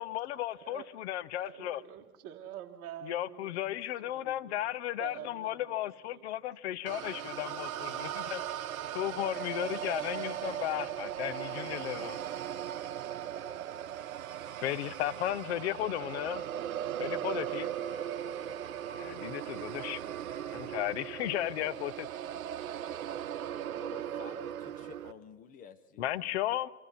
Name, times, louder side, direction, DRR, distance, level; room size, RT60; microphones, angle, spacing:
voice 1, 0.0-1.8 3.0-8.4 8.9-12.2 14.6-16.4 17.0-17.7 19.0-20.0 20.5-22.1 23.5-23.6 26.0-26.7, left 13 dB, 50° left, 16 dB, 0.8 m, -35 dB
voice 2, 1.4-4.6 5.0-6.3, right 11 dB, 35° right, 2 dB, 2.2 m, -47 dB
sound 1, 6.9-25.1, right 10 dB, 65° right, 1.1 m, -38 dB
sound 2, 15.9-21.8, right 2 dB, ahead, 7.9 m, -57 dB
voice 3, 23.7-26.1, left 7 dB, 20° left, 11 dB, 1.0 m, -51 dB
28.0 x 25.5 x 4.3 m, 1.1 s
hypercardioid pair, 125°, 44 cm